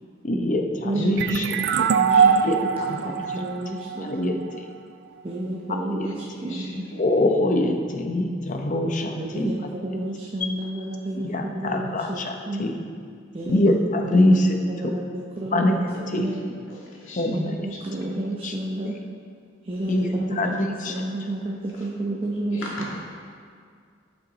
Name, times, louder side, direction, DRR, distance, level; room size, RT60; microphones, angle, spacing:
voice 1, 0.2-1.4 2.4-3.2 3.9-4.3 5.7-6.1 7.0-9.5 10.4-10.5 11.2-12.7 13.5-14.9 15.5-15.8 16.1-16.3 17.2-17.5 18.1-18.5 19.9-20.5 20.8-21.0, left 1 dB, 40° left, 4 dB, 0.7 m, -24 dB
voice 2, 0.8-2.5 3.0-4.4 5.2-6.1 6.4-6.8 9.2-12.2 12.5-12.6 13.3-13.7 14.0-14.3 14.6-16.6 17.2-19.0 19.6-22.7, right 1 dB, 30° right, -2 dB, 0.7 m, -31 dB
sound 1, 1.2-4.6, right 6 dB, 60° right, 0.4 m, -22 dB
voice 3, 2.1-2.5 6.0-7.0 16.2-16.4 16.7-17.2 21.7-21.9 22.5-23.0, left 1 dB, 85° left, -4 dB, 1.9 m, -39 dB
11.5 x 5.9 x 3.9 m, 2.1 s
head